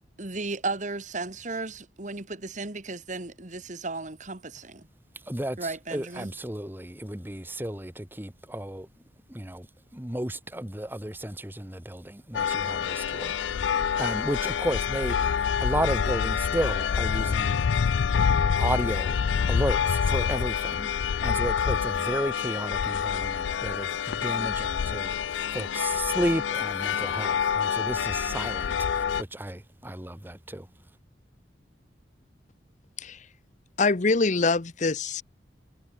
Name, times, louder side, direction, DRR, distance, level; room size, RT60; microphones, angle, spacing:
voice 1, 0.2-4.8 5.6-6.3, right 3 dB, 40° right, 1.9 m, -35 dB
voice 2, 5.3-8.9 9.3-9.7 9.9-13.3 13.9-15.2 15.6-17.6 18.6-19.2 19.5-20.9 21.2-25.1 25.5-30.7, right 1 dB, 10° right, 1.4 m, -33 dB
sound 1, 12.3-29.2, left 7 dB, 80° left, 0.4 m, -27 dB
voice 3, 33.8-35.2, left 3 dB, 40° left, 0.8 m, -24 dB
head